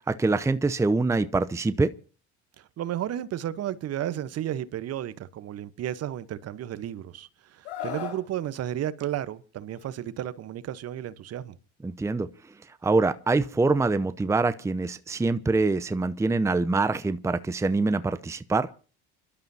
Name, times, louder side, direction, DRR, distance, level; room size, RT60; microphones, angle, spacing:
voice 1, 0.1-1.9 11.8-12.3 12.8-18.7, right 3 dB, 10° right, 0.7 m, -24 dB
voice 2, 2.6-11.6, right 11 dB, 50° right, 1.1 m, -33 dB
Screaming, 7.6-8.2 9.7-9.9, left 9 dB, 85° left, 5.2 m, -35 dB
29.0 x 12.0 x 2.8 m
supercardioid pair, 85°, 32 cm